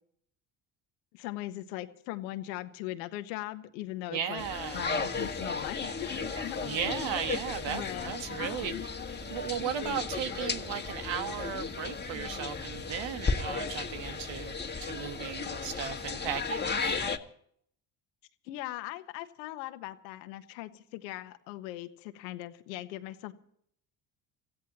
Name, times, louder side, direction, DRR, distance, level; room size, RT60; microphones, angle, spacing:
voice 1, 1.1-4.4 4.7-6.9 7.7-8.9 18.4-23.3, left 16 dB, 85° left, 1.5 m, -40 dB
voice 2, 4.1-4.9 6.6-8.7 9.3-16.7, right 8 dB, 60° right, 1.6 m, -36 dB
sound 1, 4.4-17.2, left 4 dB, 20° left, 1.9 m, -35 dB
sound 2, 4.7-16.5, right 4 dB, 85° right, 6.1 m, -58 dB
27.5 x 16.0 x 3.0 m
hypercardioid pair, 60°, 49 cm